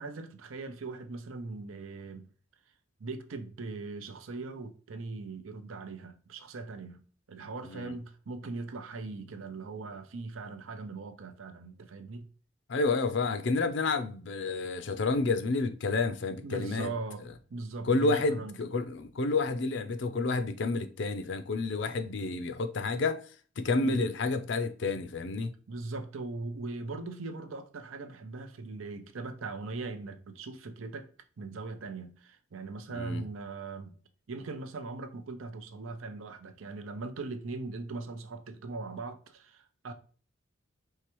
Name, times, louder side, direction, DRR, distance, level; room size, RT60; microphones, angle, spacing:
voice 1, 0.0-2.3 3.0-7.0 7.3-12.3 16.4-17.2 17.5-18.5 23.8-24.0 25.7-31.1 31.4-33.9 34.3-39.9, right 3 dB, 75° right, 0.6 m, -40 dB
voice 2, 7.6-7.9 12.7-16.9 17.8-23.2 23.6-25.5 32.9-33.2, left 3 dB, 55° left, 0.5 m, -30 dB
4.6 x 3.3 x 3.0 m
head